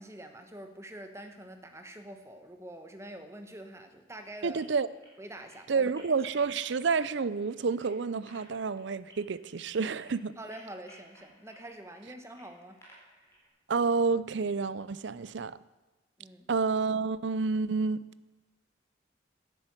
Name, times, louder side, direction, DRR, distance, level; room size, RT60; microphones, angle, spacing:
voice 1, 0.0-4.7 5.2-5.9 10.4-12.8 16.2-16.5, right 1 dB, 15° right, 6 dB, 1.2 m, -45 dB
sound 1, 4.4-13.5, equal, 15° left, 4.2 m, -59 dB
voice 2, 4.4-4.9 5.7-10.3 13.7-15.6 16.5-18.0, right 4 dB, 65° right, 17 dB, 0.5 m, -29 dB
10.5 x 10.0 x 8.1 m, 1.2 s
head